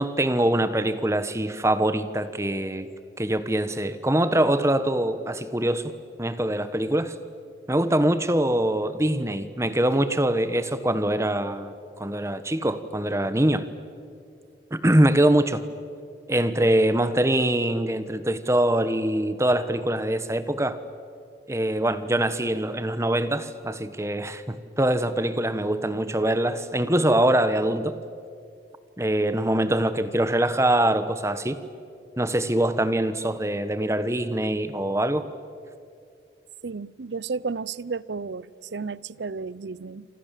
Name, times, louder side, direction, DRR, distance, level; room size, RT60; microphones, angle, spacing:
voice 1, 0.0-2.9 3.2-5.8 6.2-7.1 7.7-13.7 14.7-15.6 16.3-20.8 21.5-27.9 29.0-31.6 32.2-35.2, right 1 dB, 15° right, 1.2 m, -23 dB
voice 2, 36.6-40.1, right 4 dB, 85° right, 0.6 m, -33 dB
28.0 x 25.5 x 7.5 m
head